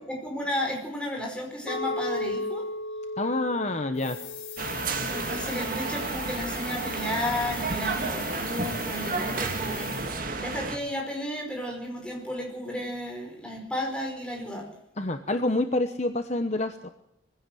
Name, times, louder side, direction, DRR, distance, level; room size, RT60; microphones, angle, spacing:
voice 1, 0.1-2.7 5.1-14.7, left 1 dB, 5° left, 0 dB, 4.9 m, -33 dB
Chink clink, 1.7-5.9, left 1 dB, 65° left, 1.5 m, -35 dB
voice 2, 3.2-4.2 15.0-16.9, left 2 dB, 35° left, 7 dB, 1.0 m, -27 dB
sound 1, 3.9-10.4, left 10 dB, 85° left, 4.8 m, -42 dB
sound 2, 4.6-10.8, right 3 dB, 45° right, 1.9 m, -31 dB
21.5 x 16.0 x 7.7 m, 0.80 s
head